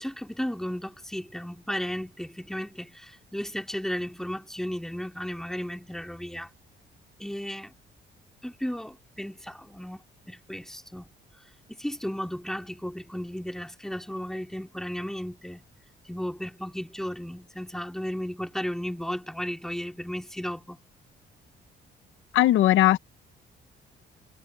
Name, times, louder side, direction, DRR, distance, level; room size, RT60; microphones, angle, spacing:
voice 1, 0.0-6.5 7.2-7.7 8.4-10.0 10.3-11.1 11.8-15.6 16.1-20.8, equal, ahead, 3.3 m, -34 dB
voice 2, 22.3-23.0, left 14 dB, 80° left, 0.8 m, -18 dB
cardioid pair, 90°, 20 cm